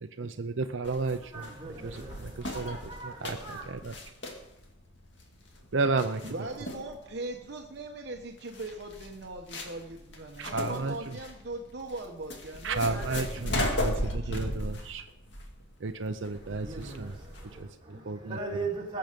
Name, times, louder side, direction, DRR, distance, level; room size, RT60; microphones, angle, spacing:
voice 1, 0.2-1.5 1.8-2.8 3.0-3.9 5.7-6.2 10.4-10.9 12.6-15.0 15.8-17.2 17.6-18.4, right 3 dB, 75° right, 0.6 m, -32 dB
sound 1, 0.8-17.6, left 1 dB, 65° left, 2.3 m, -37 dB
voice 2, 1.3-3.7 16.4-19.0, right 3 dB, 25° right, 3.4 m, -39 dB
voice 3, 6.2-14.5, right 2 dB, 60° right, 1.1 m, -40 dB
20.5 x 7.8 x 5.2 m
head